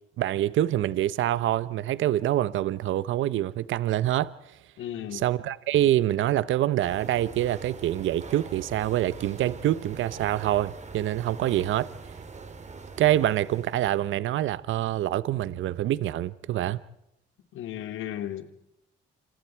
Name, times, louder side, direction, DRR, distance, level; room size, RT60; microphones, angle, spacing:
voice 1, 0.2-4.3 5.1-11.9 13.0-16.8, right 13 dB, 75° right, 0.9 m, -26 dB
voice 2, 4.8-5.2 17.5-18.5, left 11 dB, 80° left, 2.7 m, -35 dB
sound 1, 6.8-14.2, right 4 dB, 35° right, 3.8 m, -43 dB
27.5 x 27.0 x 4.6 m
cardioid pair, 90°, 20 cm